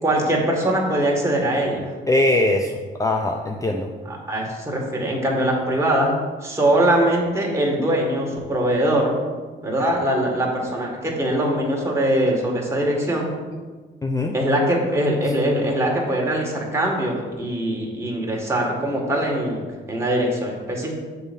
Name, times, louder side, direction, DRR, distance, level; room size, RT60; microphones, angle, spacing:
voice 1, 0.0-1.9 4.1-6.1 6.4-9.2 9.6-13.3 14.3-20.9, right 1 dB, 15° right, -2 dB, 1.9 m, -22 dB
voice 2, 2.1-3.9 14.0-14.3, left 2 dB, 15° left, 2 dB, 0.5 m, -21 dB
7.1 x 4.0 x 5.3 m, 1.4 s
cardioid pair, 90°, 20 cm